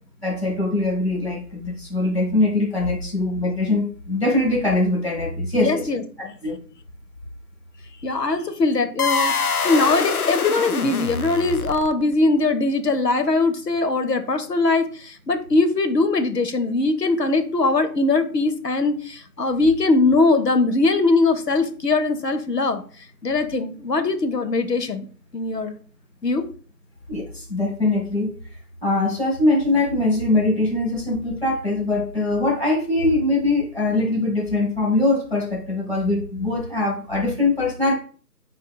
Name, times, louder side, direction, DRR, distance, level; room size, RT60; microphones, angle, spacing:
voice 1, 0.2-5.8 6.4-6.6 27.1-28.3 28.8-37.9, left 2 dB, 40° left, -2 dB, 1.7 m, -22 dB
voice 2, 5.6-6.3 8.0-22.8 23.2-25.1 25.3-25.7 26.2-26.4, left 3 dB, 80° left, 9 dB, 0.9 m, -21 dB
sound 1, 9.0-12.1, left 5 dB, 65° left, 0.5 m, -25 dB
5.1 x 4.1 x 2.3 m, 0.43 s
figure-of-eight pair, 165°, 48 cm